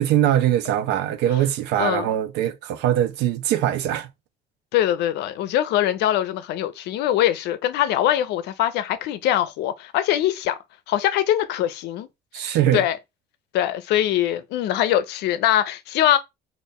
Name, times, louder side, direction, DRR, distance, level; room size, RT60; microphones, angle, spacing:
voice 1, 0.0-4.1 12.3-12.8, right 11 dB, 85° right, 0.6 m, -22 dB
voice 2, 1.8-2.1 4.7-10.6 10.9-12.1 12.3-13.0 13.5-16.2, left 12 dB, 80° left, 0.5 m, -22 dB
4.1 x 2.5 x 3.5 m
cardioid pair, 110°, 17 cm